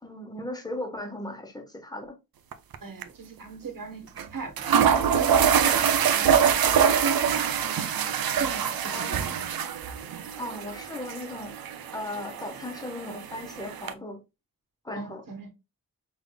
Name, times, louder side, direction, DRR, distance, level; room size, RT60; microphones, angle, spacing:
voice 1, 0.0-2.2 8.9-9.4 10.4-14.2 14.8-15.2, left 1 dB, 10° left, 1.0 m, -37 dB
sound 1, 2.5-2.8 3.0-3.1 4.2-4.3 4.6-13.9, right 8 dB, 85° right, 0.6 m, -25 dB
voice 2, 2.8-4.7 5.0-7.6 8.4-9.5 15.0-15.5, right 4 dB, 70° right, 1.3 m, -40 dB
5.3 x 3.4 x 2.2 m
wide cardioid pair, 115°, 35 cm